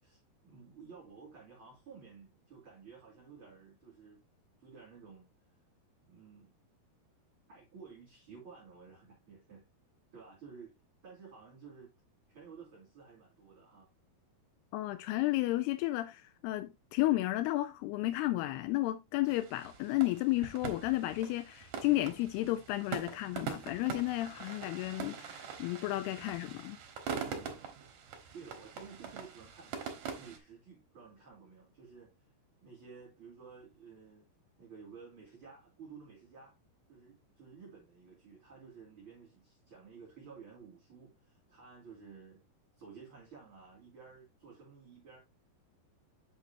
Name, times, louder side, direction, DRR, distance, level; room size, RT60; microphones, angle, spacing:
voice 1, 0.0-4.2 4.6-5.3 6.1-6.5 7.5-9.6 10.1-10.7 11.0-11.9 12.3-13.9 27.1-27.7 28.3-32.1 32.6-34.3 34.6-36.5 36.9-42.4 42.8-45.2, right 5 dB, 35° right, 3.5 m, -53 dB
voice 2, 14.7-26.8, left 17 dB, 85° left, 2.6 m, -32 dB
sound 1, 19.3-30.4, right 7 dB, 65° right, 2.7 m, -43 dB
8.3 x 6.3 x 2.8 m
omnidirectional pair, 4.6 m